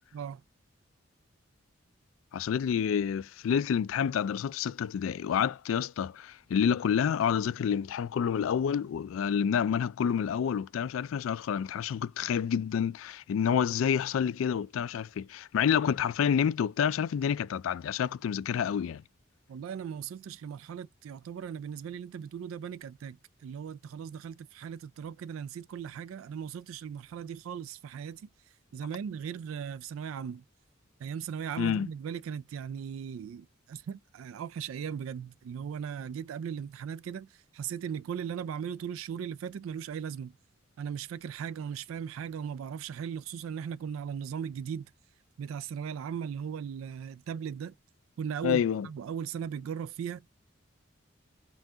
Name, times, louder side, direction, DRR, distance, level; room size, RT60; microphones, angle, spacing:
voice 1, 2.3-19.0 31.6-31.9 48.4-48.9, left 8 dB, 85° left, 0.3 m, -28 dB
voice 2, 19.5-28.3 28.7-30.4 31.0-40.3 40.8-44.9 45.4-47.7 48.2-50.2, right 7 dB, 90° right, 0.3 m, -38 dB
5.5 x 2.4 x 2.7 m
head